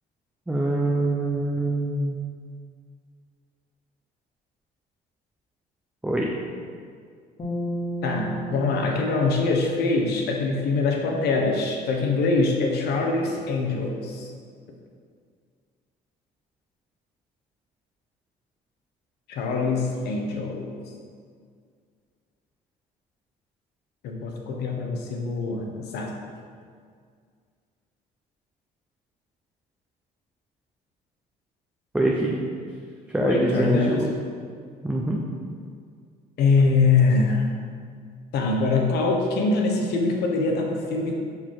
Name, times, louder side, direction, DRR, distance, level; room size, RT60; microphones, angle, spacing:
voice 1, 0.5-2.2 6.0-6.3 31.9-32.4 33.1-34.1 34.8-35.2, right 1 dB, 5° right, -2 dB, 0.6 m, -24 dB
sound 1, 7.4-10.7, right 1 dB, 30° left, 1.5 m, -34 dB
voice 2, 8.0-14.3 19.3-20.7 24.0-26.1 33.2-34.1 36.4-37.5 38.3-41.2, left 3 dB, 75° left, 1 dB, 1.0 m, -23 dB
5.5 x 4.7 x 4.7 m, 2.1 s
cardioid pair, 110°, 17 cm